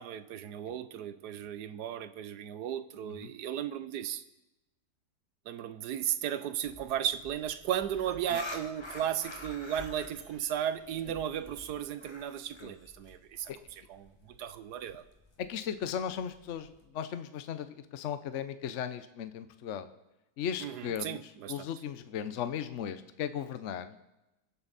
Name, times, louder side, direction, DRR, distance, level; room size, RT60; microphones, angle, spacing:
voice 1, 0.0-4.2 5.5-13.5 13.9-15.0 20.6-21.7, right 10 dB, 75° right, 13 dB, 1.3 m, -35 dB
sound 1, 6.6-16.8, left 2 dB, 20° left, 1.2 m, -48 dB
voice 2, 15.4-19.9 20.4-21.2 21.5-24.0, left 8 dB, 55° left, 11 dB, 1.0 m, -37 dB
23.5 x 8.1 x 4.1 m, 0.96 s
omnidirectional pair, 1.8 m